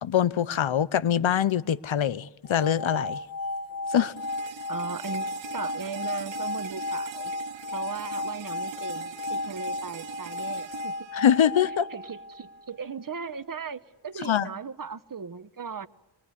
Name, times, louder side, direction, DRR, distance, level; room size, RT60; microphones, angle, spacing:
voice 1, 0.0-3.2 3.9-4.1 11.1-11.9 14.2-14.5, left 9 dB, 80° left, 0.8 m, -24 dB
sound 1, 2.5-12.6, left 2 dB, 50° left, 1.4 m, -34 dB
sound 2, 4.2-12.1, right 10 dB, 75° right, 0.9 m, -43 dB
voice 2, 4.7-7.3 7.7-11.1 11.9-15.9, right 5 dB, 45° right, 1.0 m, -37 dB
27.5 x 21.0 x 9.7 m
wide cardioid pair, 80°, 46 cm